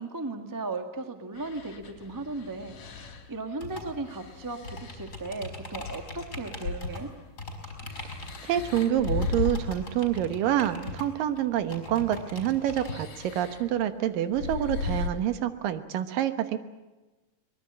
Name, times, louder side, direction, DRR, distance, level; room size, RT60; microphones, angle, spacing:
voice 1, 0.0-7.1, right 3 dB, 20° right, 6 dB, 0.5 m, -36 dB
sound 1, 1.3-3.3 4.0-6.3 6.6-9.9 11.1-11.2 12.7-13.7 14.3-15.1, left 4 dB, 55° left, 3.4 m, -36 dB
sound 2, 3.6-12.9, left 2 dB, 20° left, 4.5 m, -41 dB
voice 2, 8.4-16.6, right 11 dB, 80° right, 10 dB, 2.9 m, -27 dB
23.0 x 21.0 x 8.8 m, 1.1 s
omnidirectional pair, 4.0 m